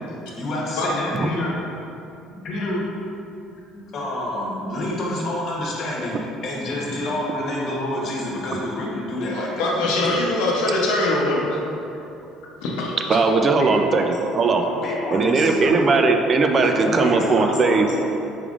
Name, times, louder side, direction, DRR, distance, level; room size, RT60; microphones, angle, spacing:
voice 1, 0.4-1.5 2.3-2.8 3.7-6.1 6.4-9.7 13.3-14.0 14.6-15.8 16.8-18.0, left 1 dB, 55° left, -4 dB, 1.0 m, -28 dB
voice 2, 9.3-11.6 12.6-13.2, left 2 dB, 85° left, -3 dB, 0.6 m, -23 dB
voice 3, 13.1-14.6 15.1-17.9, right 3 dB, 40° right, 4 dB, 0.3 m, -18 dB
4.8 x 3.5 x 2.4 m, 2.8 s
supercardioid pair, 95°, 0 cm